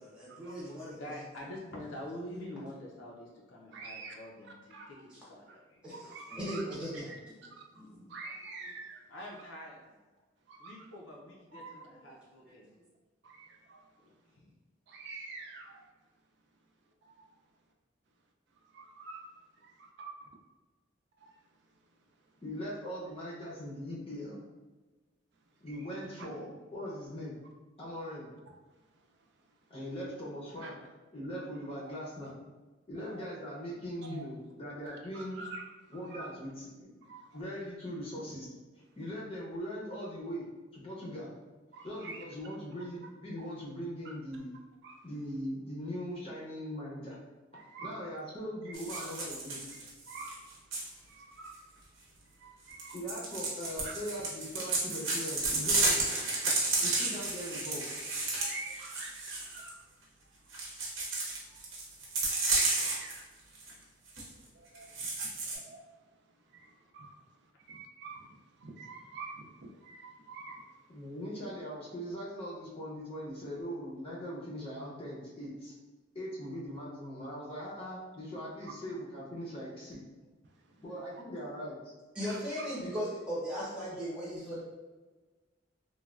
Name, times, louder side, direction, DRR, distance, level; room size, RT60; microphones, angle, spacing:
voice 1, 0.0-1.0 5.1-5.2 5.8-7.0 7.8-8.0 8.6-8.7 11.9-12.0 12.5-12.6 82.1-84.6, equal, 5° right, -8 dB, 0.8 m, -38 dB
voice 2, 0.9-6.1 6.6-6.7 7.0-7.1 9.1-9.8 10.6-12.7 14.4-14.5 64.3-64.5 64.8-65.0, left 1 dB, 80° left, -2 dB, 0.5 m, -46 dB
voice 3, 3.7-4.1 4.7-4.9 5.9-6.6 7.1-7.2 8.1-9.0 10.5-10.8 11.5-11.9 13.2-13.8 14.9-15.8 17.1-17.2 18.7-19.2 21.2-21.3 30.6-30.7 31.8-31.9 33.1-33.2 34.1-34.2 34.8-35.6 36.1-36.3 37.1-37.3 41.7-42.2 43.4-43.5 44.8-45.0 47.5-47.9 48.7-49.1 50.1-50.4 51.1-51.6 52.4-53.0 53.8-53.9 56.7-56.8 58.4-59.8 62.5-63.2 64.5-65.1 65.5-65.8 66.5-67.1 67.7-68.3 68.6-70.6 82.2-82.7, right 3 dB, 60° right, 1 dB, 0.4 m, -46 dB
voice 4, 22.4-24.4 25.6-27.4 27.8-28.3 29.7-30.8 31.1-32.3 32.9-35.4 35.9-37.1 37.3-38.5 39.0-40.5 40.7-41.3 41.8-44.5 45.0-47.2 47.8-49.6 52.9-56.0 56.8-58.0 70.9-75.7 76.1-80.0 80.8-81.9, equal, 30° left, -6 dB, 0.6 m, -40 dB
sound 1, 48.7-50.9 52.7-59.7 60.5-63.2 63.6-63.7 64.1-64.3 64.8-65.6, right 3 dB, 80° right, 0.8 m, -32 dB
3.1 x 2.2 x 2.3 m, 1.3 s
head